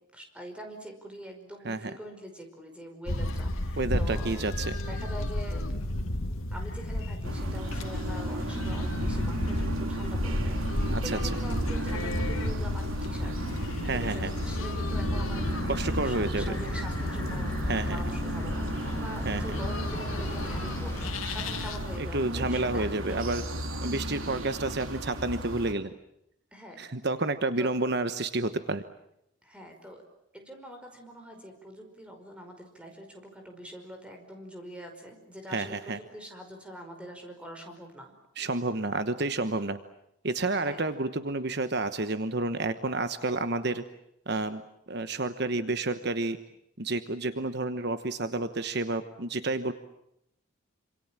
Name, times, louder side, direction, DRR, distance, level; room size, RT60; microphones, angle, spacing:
voice 1, 0.1-4.5 4.8-5.8 6.5-15.7 16.0-23.2 26.5-26.9 27.6-27.8 29.4-30.0 30.3-38.1 40.6-40.9, equal, 5° right, 3 dB, 5.2 m, -44 dB
sound 1, 3.1-22.0, left 1 dB, 80° left, 2.1 m, -33 dB
voice 2, 3.8-4.8 10.9-11.2 13.8-14.3 15.7-16.5 17.6-18.0 19.2-19.4 22.0-23.4 23.8-25.9 26.8-28.8 35.5-36.0 38.4-39.8 40.2-43.8 44.3-44.6 44.9-46.4 46.8-49.7, right 2 dB, 50° right, 10 dB, 1.1 m, -30 dB
sound 2, 7.2-25.7, equal, 75° right, 3.1 m, -35 dB
sound 3, 15.3-21.1, equal, 10° left, 6.2 m, -38 dB
27.5 x 27.0 x 7.4 m, 0.79 s
head